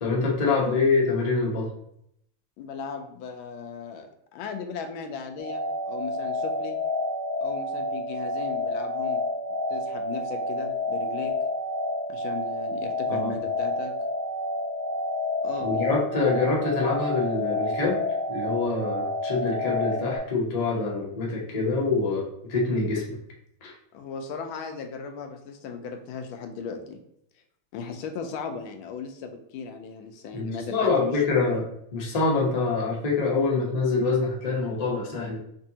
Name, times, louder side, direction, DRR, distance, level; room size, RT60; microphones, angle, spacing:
voice 1, 0.0-1.7 13.1-13.3 15.6-18.0 18.3-23.2 23.6-23.7 30.3-35.4, left 4 dB, 50° left, -3 dB, 0.4 m, -25 dB
voice 2, 2.6-6.8 7.4-9.2 9.7-11.3 12.1-14.0 15.4-16.0 23.9-27.0 27.7-31.6, left 5 dB, 85° left, 6 dB, 1.4 m, -37 dB
sound 1, 5.4-20.2, left 1 dB, 5° left, 0.7 m, -29 dB
5.2 x 2.7 x 2.8 m, 0.73 s
omnidirectional pair, 2.2 m